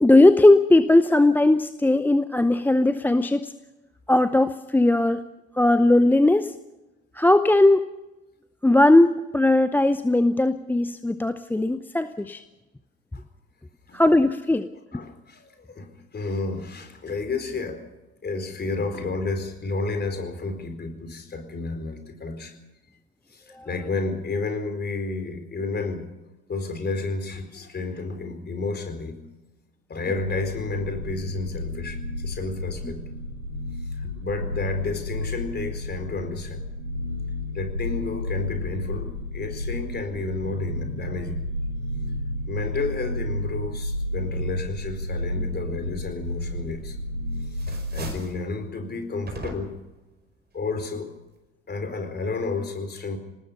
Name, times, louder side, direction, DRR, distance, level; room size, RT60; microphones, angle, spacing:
voice 1, 0.0-3.5 4.1-5.2 5.6-6.5 7.2-7.9 8.6-12.4 13.9-14.7 14.9-15.0 23.6-23.7, left 2 dB, 5° left, 12 dB, 0.7 m, -18 dB
voice 2, 14.7-17.9 18.2-22.6 23.3-26.1 26.5-29.3 29.9-33.1 33.9-36.6 37.5-41.5 42.5-47.0 47.5-49.8 50.5-51.1 51.7-53.2, left 3 dB, 25° left, 7 dB, 4.4 m, -31 dB
sound 1, 30.1-48.1, left 1 dB, 90° right, 2.3 m, -31 dB
Throwing Away Plastic Trashbag, 46.7-47.1 47.4-48.4 49.3-49.9, right 2 dB, 25° right, 5.2 m, -38 dB
27.0 x 19.0 x 5.5 m, 1.0 s
figure-of-eight pair, 65°, 39 cm